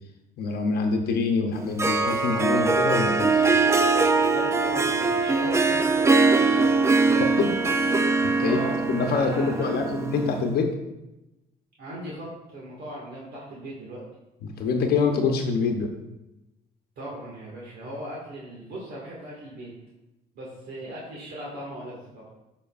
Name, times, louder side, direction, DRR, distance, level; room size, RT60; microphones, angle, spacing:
voice 1, 0.4-3.4 7.4-7.5 8.4-8.6 8.9-10.7 14.4-15.9, left 4 dB, 65° left, 4 dB, 0.9 m, -25 dB
Harp, 1.5-10.5, right 3 dB, 15° right, 0.4 m, -22 dB
voice 2, 4.3-6.8 7.0-7.2 8.4-9.9 11.8-14.0 17.0-19.7 20.3-22.2, right 1 dB, 70° right, -5 dB, 2.0 m, -38 dB
12.5 x 5.2 x 2.5 m, 0.97 s
cardioid pair, 110°, 17 cm